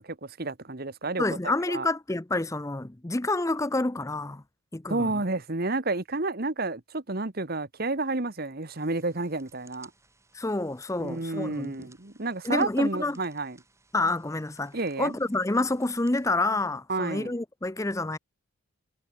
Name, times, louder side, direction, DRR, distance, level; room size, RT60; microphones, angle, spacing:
voice 1, 0.0-1.2 1.7-1.9 4.9-9.9 11.0-13.6 14.7-15.2 16.9-17.3, right 2 dB, 45° right, 1.3 m, -30 dB
voice 2, 1.2-4.4 4.7-5.1 10.3-11.7 12.4-13.2 13.9-18.2, left 2 dB, 15° left, 0.6 m, -28 dB
sound 1, 8.7-16.5, right 3 dB, 15° right, 7.6 m, -61 dB
head